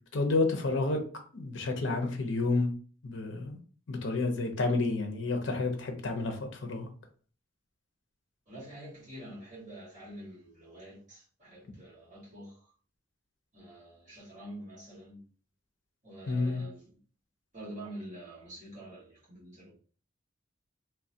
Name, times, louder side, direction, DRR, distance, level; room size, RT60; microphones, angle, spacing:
voice 1, 0.1-1.0 1.3-2.7 3.0-3.6 3.9-6.9 16.3-16.6, left 3 dB, 70° left, 0.6 m, -30 dB
voice 2, 8.5-12.7 13.5-15.3 16.0-17.0 17.5-19.7, right 1 dB, 40° right, 1.5 m, -47 dB
2.9 x 2.3 x 2.6 m
head